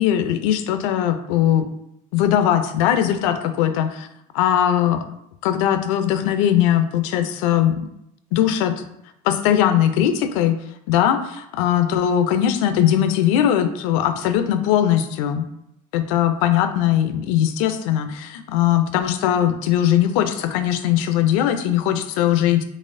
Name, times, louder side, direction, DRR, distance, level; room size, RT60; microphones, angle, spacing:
voice 1, 0.0-1.7 2.1-4.1 4.3-5.0 5.4-7.8 8.3-8.8 9.2-10.6 10.9-15.4 15.9-22.6, left 10 dB, 85° left, 9 dB, 0.5 m, -20 dB
4.0 x 3.4 x 2.6 m, 0.77 s
cardioid pair, 135°, 17 cm